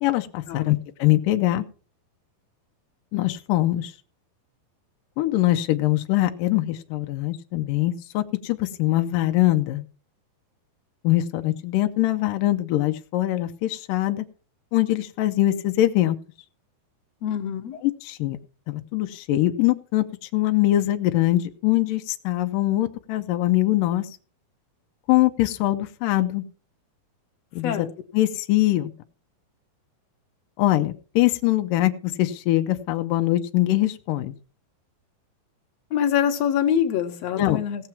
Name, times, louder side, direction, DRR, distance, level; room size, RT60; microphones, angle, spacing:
voice 1, 0.0-1.7 3.1-3.9 5.2-9.8 11.0-14.3 14.7-16.2 17.8-18.4 18.7-24.1 25.1-26.4 27.5-27.9 28.1-28.9 30.6-34.3 37.4-37.6, left 15 dB, 75° left, 7 dB, 2.2 m, -23 dB
voice 2, 17.2-17.8 27.6-27.9 35.9-37.9, left 9 dB, 55° left, 5 dB, 2.2 m, -24 dB
17.5 x 7.3 x 4.5 m, 0.38 s
omnidirectional pair, 4.4 m